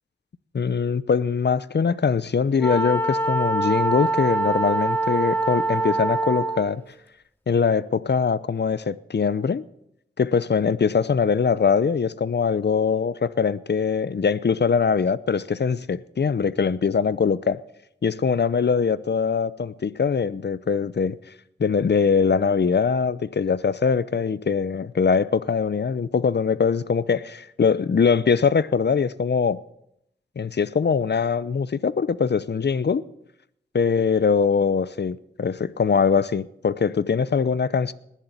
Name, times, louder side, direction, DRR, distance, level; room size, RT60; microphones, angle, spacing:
voice 1, 0.5-6.8 7.5-9.6 10.2-17.6 18.0-21.2 21.6-29.6 30.4-33.0 33.7-37.9, left 6 dB, 60° left, 0.7 m, -22 dB
Wind instrument woodwind instrument, 2.6-6.8, right 2 dB, 10° left, 2.3 m, -24 dB
19.0 x 7.5 x 8.3 m
cardioid pair, 45°, 20 cm